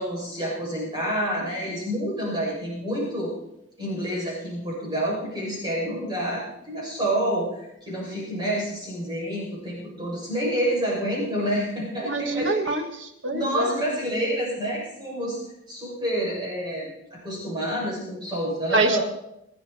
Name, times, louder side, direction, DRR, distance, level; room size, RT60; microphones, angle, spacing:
voice 1, 0.0-3.3 3.8-12.7 13.3-15.4 15.7-19.0, right 1 dB, 20° right, -6 dB, 7.0 m, -28 dB
voice 2, 12.0-13.8 18.7-19.0, right 2 dB, 70° right, 6 dB, 1.8 m, -26 dB
27.0 x 9.6 x 4.4 m, 0.85 s
head